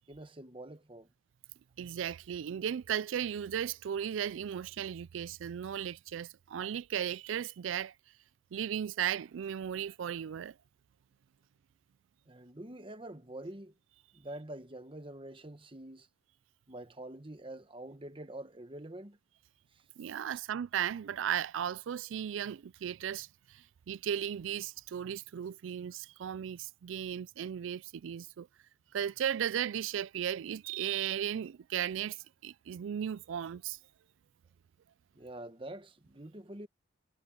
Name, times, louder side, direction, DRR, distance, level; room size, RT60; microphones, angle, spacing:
voice 1, 0.1-1.1 12.3-13.7 14.1-16.1 16.7-19.2 19.7-19.8 20.3-20.4 35.1-36.7, right 1 dB, 25° right, 1.2 m, -46 dB
voice 2, 1.8-7.9 8.5-10.5 20.0-28.5 28.9-33.8, right 9 dB, 80° right, 0.4 m, -36 dB
head